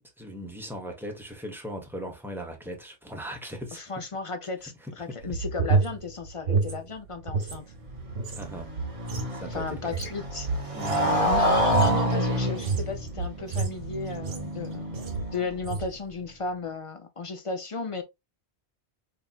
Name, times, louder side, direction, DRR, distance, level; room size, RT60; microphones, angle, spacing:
voice 1, 0.2-3.8 4.8-5.2 8.4-8.7 9.3-10.0 10.7-11.3, equal, ahead, 0.9 m, -38 dB
voice 2, 3.7-7.6 9.5-10.5 11.2-15.0 15.3-18.0, left 4 dB, 40° left, 0.5 m, -34 dB
sound 1, 5.2-7.6 7.9-14.6 14.9-15.3 15.6-15.9, right 4 dB, 85° right, 1.2 m, -29 dB
Motorcycle, 7.6-15.8, equal, 35° right, 0.7 m, -29 dB
5.1 x 2.8 x 2.3 m
omnidirectional pair, 1.2 m